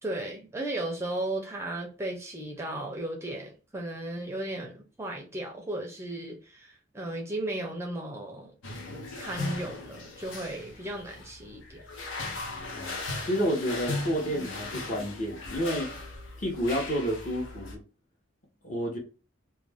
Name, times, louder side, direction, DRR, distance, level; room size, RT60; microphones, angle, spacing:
voice 1, 0.0-8.5 9.2-11.8, right 1 dB, 15° right, 0.5 m, -35 dB
sound 1, 8.6-17.8, left 2 dB, 80° left, 0.7 m, -38 dB
voice 2, 13.2-15.9 16.4-17.8 18.6-19.0, equal, 40° left, 0.9 m, -30 dB
2.4 x 2.2 x 3.3 m
head